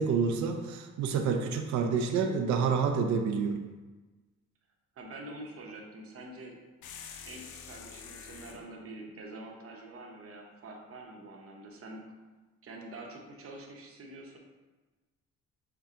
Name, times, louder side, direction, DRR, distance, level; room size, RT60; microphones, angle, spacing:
voice 1, 0.0-3.6, right 5 dB, 70° right, 5 dB, 0.5 m, -28 dB
voice 2, 5.0-6.6 7.2-12.0 12.6-14.4, right 2 dB, 50° right, 0 dB, 0.9 m, -46 dB
sound 1, 6.8-8.7, left 7 dB, 80° left, 0.5 m, -46 dB
5.8 x 2.2 x 3.7 m, 1.2 s
cardioid pair, 90°, 30 cm